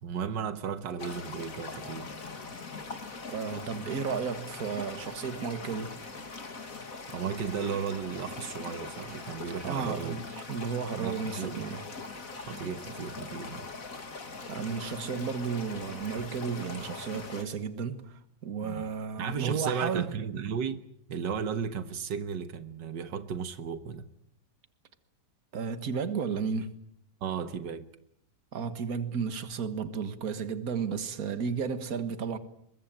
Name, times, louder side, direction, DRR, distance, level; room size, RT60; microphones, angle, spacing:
voice 1, 0.0-2.1 7.1-10.2 10.9-11.6 12.4-13.7 18.6-18.9 19.2-20.8 21.1-24.0 27.2-27.9, right 6 dB, 90° right, 1.9 m, -35 dB
sound 1, 1.0-17.4, left 4 dB, 50° left, 2.7 m, -42 dB
voice 2, 3.3-5.9 9.6-11.8 14.5-20.1 25.5-26.7 28.5-32.4, right 6 dB, 55° right, 2.0 m, -33 dB
23.0 x 22.0 x 9.0 m
omnidirectional pair, 1.9 m